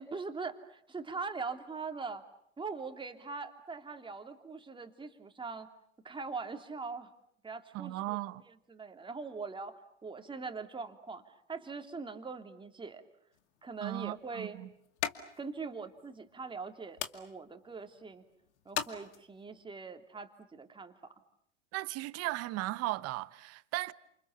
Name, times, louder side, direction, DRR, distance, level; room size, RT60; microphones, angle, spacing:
voice 1, 0.0-2.2 2.6-5.7 6.0-7.1 7.4-13.0 13.6-14.6 15.4-18.2 18.6-20.9, right 4 dB, 15° right, 2.9 m, -42 dB
voice 2, 7.7-8.4 13.8-14.7 21.7-23.9, right 18 dB, 45° right, 1.1 m, -36 dB
sound 1, 13.3-19.6, left 10 dB, 75° left, 2.4 m, -43 dB
29.5 x 28.0 x 6.9 m
hypercardioid pair, 100°, 35 cm